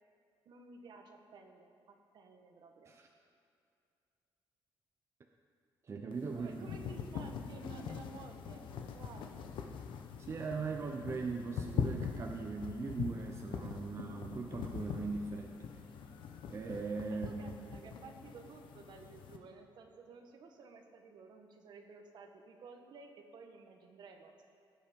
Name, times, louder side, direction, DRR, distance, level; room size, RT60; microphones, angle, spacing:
voice 1, 0.4-2.9 6.3-9.4 17.1-24.4, right 4 dB, 60° right, 4 dB, 1.4 m, -54 dB
voice 2, 5.8-6.7 10.2-15.6 16.5-17.5, right 4 dB, 35° right, 2 dB, 0.8 m, -39 dB
sound 1, 6.1-19.4, left 7 dB, 75° left, 1.0 m, -42 dB
17.0 x 8.8 x 5.3 m, 2.5 s
cardioid pair, 135°, 9 cm